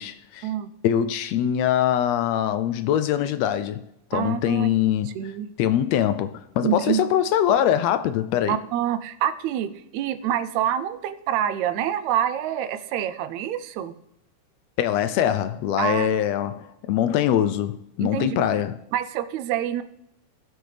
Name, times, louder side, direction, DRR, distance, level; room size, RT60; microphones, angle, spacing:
voice 1, 0.0-0.5 0.8-3.8 4.1-5.2 5.6-8.6 14.8-18.8, left 10 dB, 80° left, 1.6 m, -23 dB
voice 2, 4.1-4.7 5.2-5.5 6.6-7.0 8.5-13.9 15.8-16.2 18.0-18.5 18.9-19.8, right 10 dB, 80° right, 1.9 m, -26 dB
18.0 x 6.2 x 3.3 m
omnidirectional pair, 3.3 m